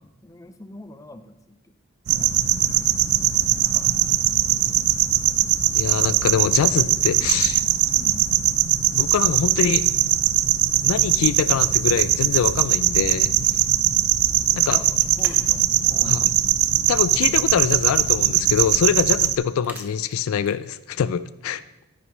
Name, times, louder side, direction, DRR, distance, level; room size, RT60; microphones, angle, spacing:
voice 1, 0.0-1.8 2.1-2.3 2.6-2.9 3.1-4.1 4.6-4.8 7.1-7.3 7.8-8.3 14.7-16.4, left 1 dB, 15° left, 10 dB, 0.5 m, -43 dB
sound 1, 2.1-19.4, right 12 dB, 85° right, 0.4 m, -20 dB
voice 2, 5.7-7.6 8.9-9.9 10.8-13.3 14.5-14.8 16.0-16.3 16.9-21.6, left 7 dB, 80° left, 15 dB, 0.3 m, -24 dB
sound 2, 13.8-15.3 15.7-15.8 16.2-18.0 18.8-20.7, right 2 dB, 10° right, 0.8 m, -46 dB
10.0 x 9.7 x 3.1 m, 0.96 s
head